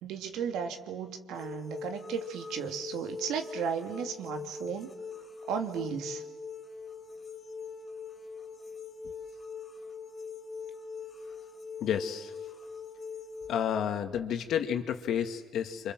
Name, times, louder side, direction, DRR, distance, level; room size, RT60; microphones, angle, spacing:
voice 1, 0.0-4.9 5.5-6.2, right 7 dB, 90° right, 5 dB, 2.7 m, -35 dB
sound 1, 1.3-13.8, left 5 dB, 35° left, 2.8 m, -42 dB
voice 2, 11.8-12.3 13.5-15.9, left 9 dB, 75° left, 7 dB, 2.1 m, -31 dB
28.0 x 26.5 x 7.7 m, 1.2 s
cardioid pair, 90°, 0 cm